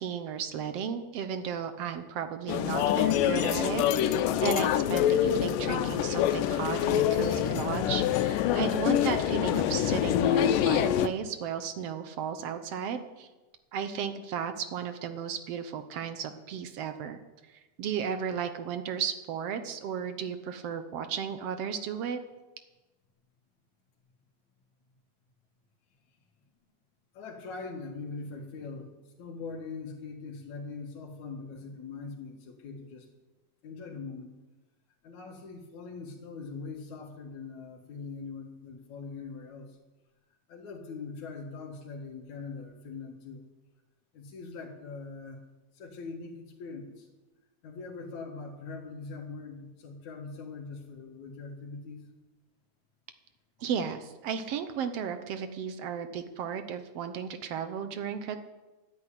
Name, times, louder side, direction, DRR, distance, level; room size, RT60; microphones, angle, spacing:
voice 1, 0.0-13.3 13.7-17.2 17.5-22.2 53.6-58.4, right 7 dB, 70° right, 9 dB, 1.5 m, -34 dB
sound 1, 2.5-11.1, left 10 dB, 90° left, 2.4 m, -26 dB
voice 2, 27.1-33.1 33.6-34.3 35.0-39.8 40.5-43.4 44.1-45.4 45.7-47.1 47.6-52.0, left 4 dB, 65° left, -1 dB, 2.9 m, -42 dB
12.5 x 9.6 x 9.9 m, 1.1 s
omnidirectional pair, 3.8 m